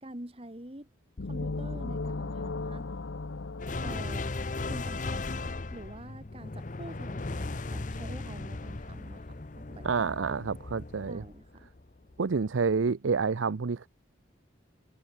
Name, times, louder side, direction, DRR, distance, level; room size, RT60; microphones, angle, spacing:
voice 1, 0.0-0.9 1.2-2.9 3.8-4.3 4.7-10.4 11.1-11.7, right 1 dB, 30° right, 2.1 m, -46 dB
sound 1, 1.2-4.9, left 3 dB, 85° left, 0.9 m, -36 dB
sound 2, 3.6-12.2, left 2 dB, 40° left, 0.8 m, -37 dB
voice 2, 9.8-11.2 12.2-13.9, right 5 dB, 90° right, 0.6 m, -28 dB
head